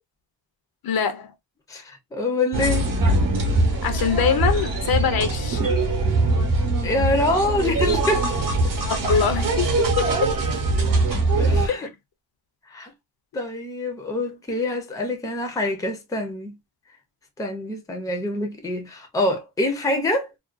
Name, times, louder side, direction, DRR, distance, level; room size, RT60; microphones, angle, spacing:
voice 1, 0.8-1.3 3.8-5.6 8.8-10.1 11.7-11.9, left 6 dB, 55° left, 0.5 m, -23 dB
voice 2, 1.7-2.9 6.8-8.3 11.4-11.9 12.7-12.9 13.3-16.5 17.4-20.3, left 2 dB, 10° left, 0.4 m, -25 dB
sound 1, 2.5-11.7, right 2 dB, 50° right, 0.8 m, -22 dB
2.4 x 2.2 x 2.4 m
wide cardioid pair, 135°, 43 cm